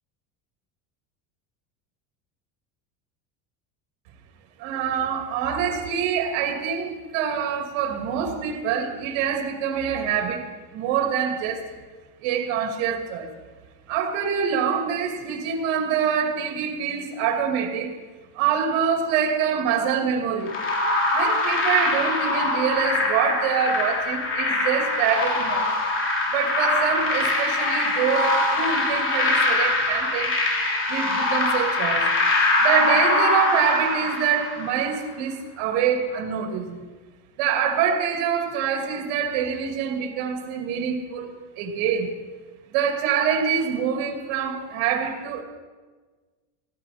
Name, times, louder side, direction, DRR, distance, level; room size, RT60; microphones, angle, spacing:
voice 1, 4.6-11.6 12.2-13.3 13.9-17.9 18.3-20.5 21.1-25.7 26.3-30.4 30.9-32.0 32.6-36.8 37.4-42.1 42.7-45.4, right 7 dB, 80° right, 2.5 m, -25 dB
sound 1, 20.5-34.8, left 2 dB, 30° left, 2.7 m, -23 dB
18.0 x 12.0 x 4.3 m
cardioid pair, 140°, 41 cm